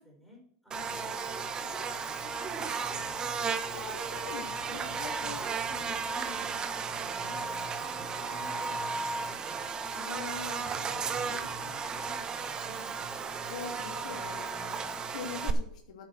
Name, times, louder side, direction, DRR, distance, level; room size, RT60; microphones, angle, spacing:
voice 1, 0.0-3.7 4.6-9.4 10.9-13.1, left 2 dB, 5° left, -2 dB, 4.7 m, -52 dB
Buzz, 0.7-15.5, right 5 dB, 20° right, 1.0 m, -34 dB
voice 2, 3.7-5.5 6.3-6.5 9.9-11.6 13.5-16.1, left 7 dB, 75° left, 2 dB, 2.8 m, -44 dB
9.9 x 7.8 x 6.3 m, 0.66 s
supercardioid pair, 135°, 4 cm